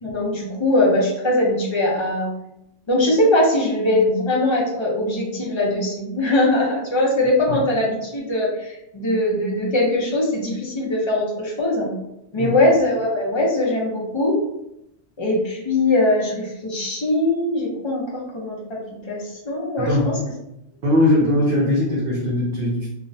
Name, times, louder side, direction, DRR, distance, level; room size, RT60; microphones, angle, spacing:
voice 1, 0.0-2.3 2.9-11.9 12.3-14.4 15.2-18.8 19.1-19.9, left 1 dB, 45° left, -3 dB, 0.3 m, -21 dB
voice 2, 19.8-20.2 20.8-22.9, left 1 dB, 60° right, -5 dB, 0.7 m, -20 dB
2.4 x 2.0 x 2.5 m, 0.84 s
omnidirectional pair, 1.2 m